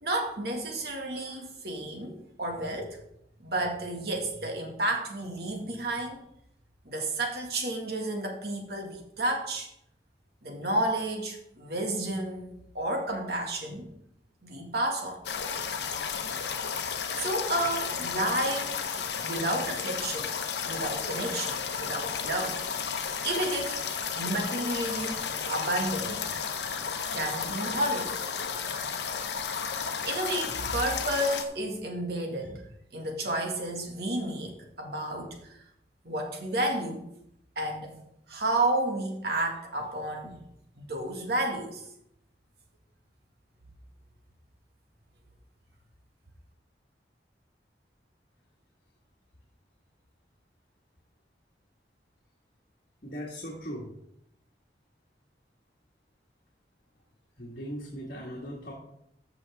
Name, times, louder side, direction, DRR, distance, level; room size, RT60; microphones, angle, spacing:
voice 1, 0.0-3.0 3.4-6.2 6.9-9.7 10.4-13.9 14.4-15.2 17.2-18.8 19.2-20.3 20.6-22.6 23.2-26.2 27.1-28.1 30.1-32.6 32.9-35.6 36.0-37.0 37.6-38.0 38.3-40.4 40.8-41.8, right 1 dB, 60° right, 2 dB, 1.9 m, -31 dB
sound 1, 15.2-31.4, left 6 dB, 75° left, 0.9 m, -33 dB
voice 2, 53.0-53.9 57.4-58.7, equal, 55° left, -3 dB, 1.7 m, -38 dB
14.0 x 5.9 x 3.5 m, 0.77 s
head